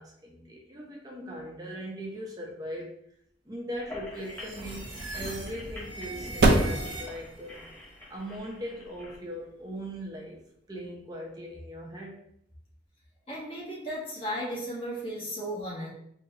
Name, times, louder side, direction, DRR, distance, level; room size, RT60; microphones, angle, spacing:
voice 1, 0.0-3.0 3.4-7.6 8.1-12.2, equal, 20° right, -1 dB, 0.6 m, -40 dB
sound 1, 3.7-9.2, left 1 dB, 10° left, 1.0 m, -44 dB
sound 2, 3.8-11.1, right 1 dB, 65° right, 0.5 m, -31 dB
sound 3, 4.1-7.5, right 2 dB, 90° right, 1.3 m, -42 dB
voice 2, 13.3-15.9, equal, 30° left, -5 dB, 1.2 m, -35 dB
4.0 x 2.8 x 2.8 m, 0.72 s
head